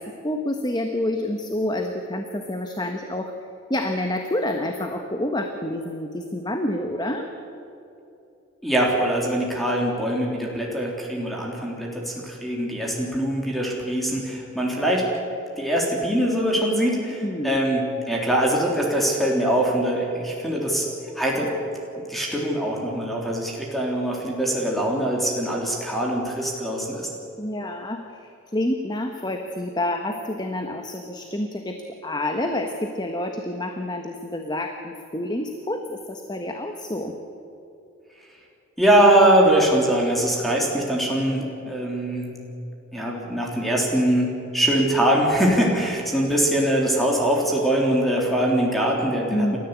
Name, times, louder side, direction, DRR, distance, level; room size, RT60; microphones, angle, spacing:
voice 1, 0.0-3.3 3.7-7.3 17.1-17.6 27.4-31.8 32.0-37.1 49.3-49.6, left 1 dB, 20° left, 4 dB, 1.3 m, -28 dB
voice 2, 8.6-15.1 15.6-20.9 21.2-21.5 22.1-27.1 38.8-42.4 42.9-49.6, right 1 dB, ahead, -2 dB, 3.6 m, -22 dB
29.5 x 14.0 x 8.3 m, 2.9 s
head